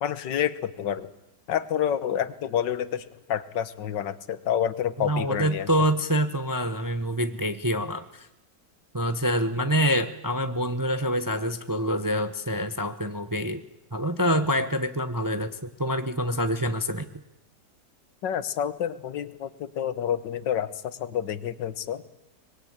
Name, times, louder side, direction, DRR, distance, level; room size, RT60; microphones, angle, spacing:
voice 1, 0.0-1.1 1.5-5.7 18.2-22.0, left 9 dB, 90° left, 14 dB, 1.7 m, -28 dB
voice 2, 5.0-8.3 8.9-13.6 13.9-17.1, equal, 20° right, 9 dB, 0.6 m, -26 dB
24.0 x 21.0 x 8.7 m, 0.90 s
omnidirectional pair, 1.9 m